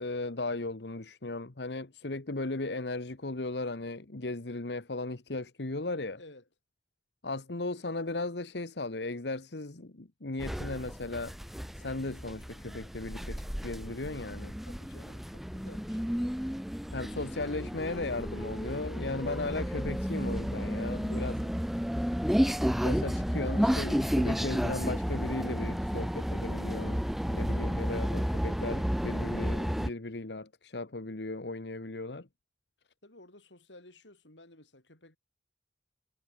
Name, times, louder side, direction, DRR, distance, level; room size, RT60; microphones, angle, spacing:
voice 1, 0.0-6.2 7.2-11.3 11.8-14.5 16.9-21.3 22.8-32.3, left 2 dB, 75° left, 1.3 m, -36 dB
voice 2, 6.2-6.5 14.6-16.1 21.0-22.0 33.0-35.2, left 1 dB, 90° left, 7.1 m, -54 dB
sound 1, 10.4-29.9, equal, ahead, 0.3 m, -32 dB
head